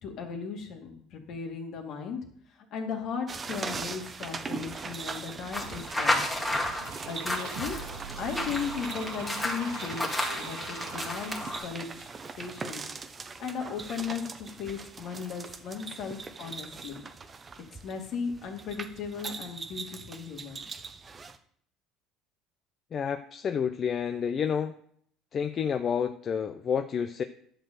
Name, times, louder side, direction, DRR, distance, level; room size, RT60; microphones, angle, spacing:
voice 1, 0.0-2.2 2.7-6.2 7.1-7.8 8.2-11.3 11.6-12.1 12.4-12.8 13.4-17.0 17.8-20.6, left 6 dB, 60° left, 2 dB, 2.3 m, -36 dB
sound 1, 3.3-21.4, right 4 dB, 25° right, 0.8 m, -41 dB
sound 2, 5.5-11.6, left 1 dB, 10° left, 2.1 m, -32 dB
sound 3, 5.6-11.6, right 8 dB, 75° right, 1.0 m, -44 dB
voice 2, 22.9-24.7 25.3-27.2, left 7 dB, 40° left, 8 dB, 0.6 m, -29 dB
11.0 x 4.6 x 7.6 m, 0.63 s
supercardioid pair, 115°, 0 cm